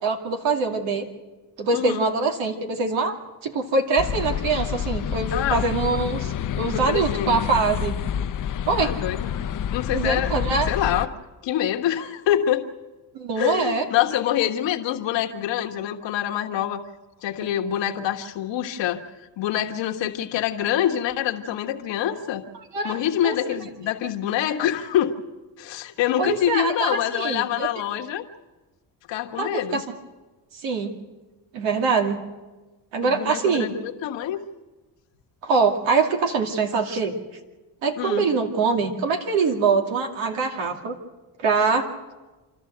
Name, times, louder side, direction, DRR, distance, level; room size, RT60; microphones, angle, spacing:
voice 1, 0.0-1.0 1.6-3.2 3.4-7.9 8.7-8.9 9.9-10.7 13.1-13.9 22.7-23.0 23.2-23.3 26.2-27.7 29.4-29.8 30.5-30.9 31.5-32.2 32.9-33.7 35.4-37.1 37.8-41.0 41.4-41.9, right 4 dB, 80° right, 4 dB, 2.5 m, -23 dB
voice 2, 1.7-2.1 5.3-5.7 6.7-7.4 8.8-9.3 9.7-10.3 10.7-11.1 11.4-12.6 13.4-16.8 17.2-19.0 19.4-22.4 22.8-25.2 25.6-28.2 29.1-29.8 33.0-34.4 38.0-38.3, left 11 dB, 75° left, 3 dB, 1.5 m, -25 dB
sound 1, 4.0-11.1, left 8 dB, 45° left, 0.8 m, -28 dB
27.5 x 12.5 x 8.0 m, 1.2 s
cardioid pair, 80°, 44 cm